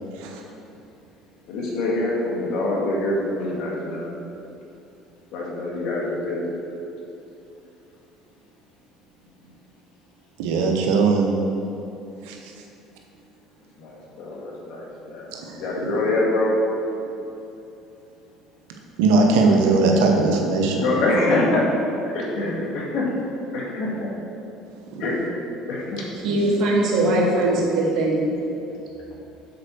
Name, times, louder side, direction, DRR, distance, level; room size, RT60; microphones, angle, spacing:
voice 1, 1.5-4.2 5.3-6.5 13.8-16.5 20.8-21.7 22.1-23.1 23.5-24.1 25.0-25.3 25.7-26.1, left 2 dB, 65° left, -3 dB, 1.9 m, -25 dB
voice 2, 10.4-11.3 12.2-12.5 15.3-15.6 19.0-20.8 25.0-25.1 26.3-26.4, right 3 dB, 85° right, 2 dB, 1.0 m, -20 dB
voice 3, 26.2-28.3, right 2 dB, 65° right, -3 dB, 1.9 m, -20 dB
7.5 x 4.5 x 6.2 m, 2.8 s
supercardioid pair, 105°, 0 cm